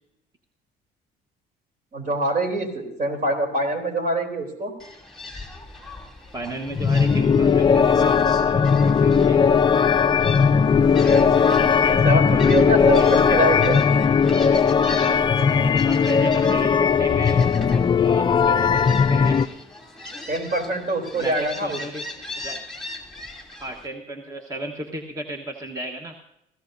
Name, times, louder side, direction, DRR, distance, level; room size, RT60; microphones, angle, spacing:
voice 1, 1.9-4.7 11.5-13.8 20.3-21.8, right 1 dB, 50° right, 5 dB, 3.5 m, -24 dB
Gull seagull, 4.8-23.9, left 2 dB, ahead, 2.8 m, -39 dB
voice 2, 6.3-9.5 12.3-13.4 15.0-17.4 18.0-19.4 21.1-22.1 22.4-22.7 23.6-26.2, right 1 dB, 20° right, 3 dB, 1.2 m, -34 dB
sound 1, 6.7-19.5, left 6 dB, 25° left, 0.4 m, -18 dB
23.0 x 15.5 x 2.7 m, 0.85 s
cardioid pair, 110°, 17 cm